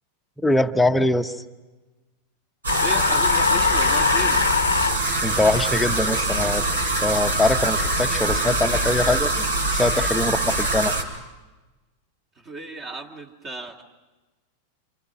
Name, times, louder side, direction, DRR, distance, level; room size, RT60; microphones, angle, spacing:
voice 1, 0.4-1.4 5.2-6.6 7.0-10.9, left 2 dB, 5° left, 6 dB, 1.1 m, -22 dB
sound 1, 2.6-11.0, right 2 dB, 70° right, 4.3 m, -24 dB
sound 2, 2.7-5.0, left 6 dB, 75° left, 1.0 m, -22 dB
voice 2, 2.8-4.4 12.4-13.8, right 3 dB, 30° right, 3 dB, 2.5 m, -34 dB
29.0 x 28.5 x 6.2 m, 1.2 s
figure-of-eight pair, 90°, 0 cm